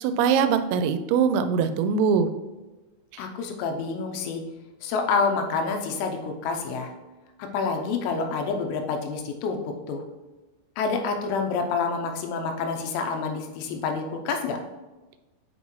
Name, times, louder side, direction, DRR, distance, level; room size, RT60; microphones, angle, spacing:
voice 1, 0.0-2.3 3.1-3.2, right 6 dB, 90° right, 10 dB, 3.2 m, -22 dB
voice 2, 3.2-4.4 4.8-6.9 7.5-10.0 10.8-14.6, left 4 dB, 85° left, 4 dB, 3.4 m, -28 dB
8.0 x 5.4 x 3.1 m, 1.2 s
omnidirectional pair, 5.8 m